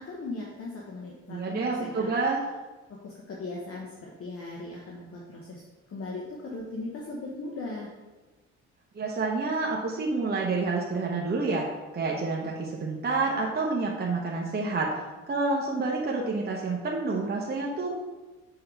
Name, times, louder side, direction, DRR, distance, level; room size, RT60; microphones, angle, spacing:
voice 1, 0.0-2.1 2.9-5.6 5.9-7.9, left 2 dB, 50° left, -3 dB, 1.1 m, -38 dB
voice 2, 1.3-2.4 8.9-11.7 11.9-14.9 15.3-17.9, right 3 dB, 35° right, -2 dB, 0.9 m, -28 dB
6.6 x 3.8 x 4.6 m, 1.2 s
cardioid pair, 90°, 30 cm